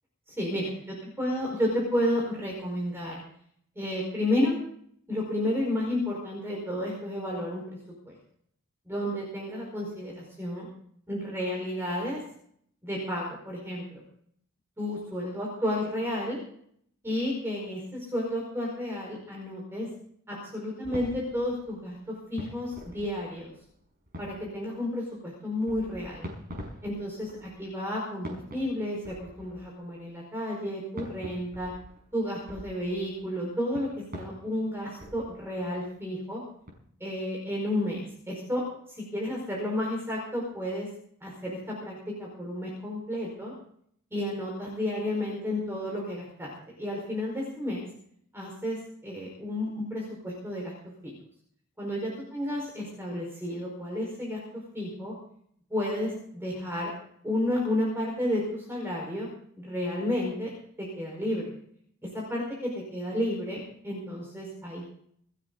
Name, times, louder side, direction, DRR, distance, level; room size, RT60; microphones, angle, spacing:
voice 1, 0.3-3.2 3.7-4.6 5.1-7.8 8.0-8.1 8.9-10.7 11.1-12.2 12.8-14.0 14.8-16.4 17.0-19.9 20.3-23.5 24.2-26.3 26.8-27.3 27.6-31.7 32.1-36.4 37.0-38.6 38.9-40.9 41.2-43.5 44.1-46.5 46.8-47.9 48.3-50.7 51.0-51.1 51.8-54.4 54.7-55.1 55.7-56.9 57.2-59.3 59.6-60.5 60.8-61.5 62.1-64.9, left 1 dB, 10° right, -2 dB, 4.9 m, -31 dB
sound 1, 20.8-23.8 24.1-24.8 25.7-27.9 28.2-30.1 31.0-36.0 36.6-36.7, equal, 45° right, 5.7 m, -45 dB
28.5 x 9.7 x 4.0 m, 0.65 s
head